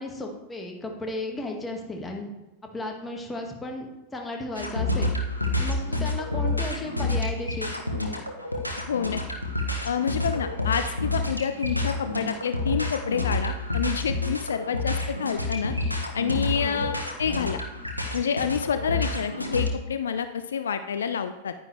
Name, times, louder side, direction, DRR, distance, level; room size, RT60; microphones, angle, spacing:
voice 1, 0.0-2.3 2.6-5.1 5.6-7.8 16.6-16.9, left 2 dB, 15° left, 2 dB, 1.8 m, -34 dB
sound 1, 4.5-19.7, left 2 dB, 90° left, 1.2 m, -28 dB
voice 2, 8.9-9.2 9.8-15.7 16.1-17.6 18.1-21.5, left 7 dB, 65° left, 10 dB, 0.5 m, -28 dB
10.5 x 9.7 x 3.3 m, 1.1 s
figure-of-eight pair, 90°, 0 cm